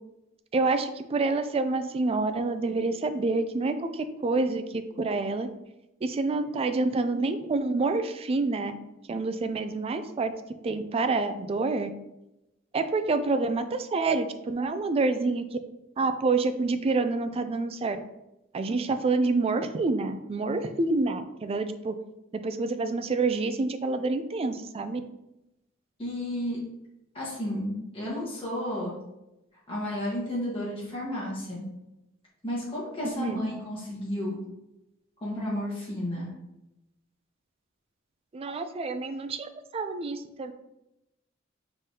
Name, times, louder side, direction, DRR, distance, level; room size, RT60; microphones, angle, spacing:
voice 1, 0.5-5.5 6.0-8.7 9.1-10.3 10.6-11.9 12.7-15.6 16.0-18.0 18.5-22.0 22.3-25.0 33.2-33.4 38.3-40.5, right 3 dB, 30° right, 9 dB, 0.3 m, -27 dB
voice 2, 26.0-26.6 27.1-28.9 29.7-31.6 32.4-34.4 35.2-36.3, left 1 dB, 30° left, -6 dB, 1.3 m, -32 dB
5.3 x 3.3 x 2.8 m, 0.91 s
head